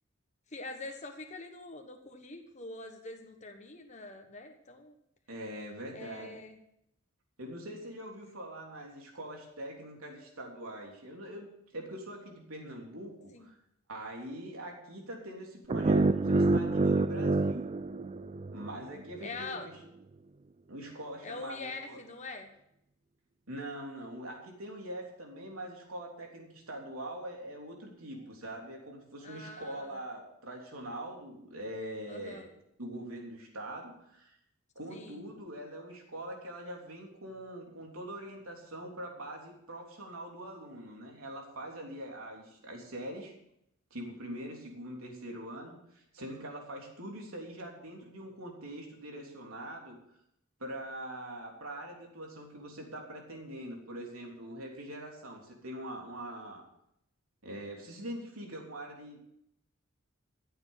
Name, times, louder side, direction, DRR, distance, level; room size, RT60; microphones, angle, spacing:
voice 1, 0.5-5.0 5.9-6.6 13.3-13.5 19.2-19.7 21.2-22.5 29.2-30.0 32.1-32.5 34.9-35.2, left 3 dB, 35° left, 4 dB, 1.3 m, -44 dB
voice 2, 5.3-6.4 7.4-11.5 11.7-13.6 13.9-17.7 18.5-19.8 20.7-22.0 23.5-32.4 32.8-34.4 34.7-43.3 43.9-50.0 50.6-56.6 57.4-59.2, right 1 dB, 80° right, 0 dB, 3.4 m, -43 dB
sound 1, 15.7-18.8, right 3 dB, 30° right, 0.4 m, -27 dB
14.0 x 8.1 x 7.2 m, 0.77 s
head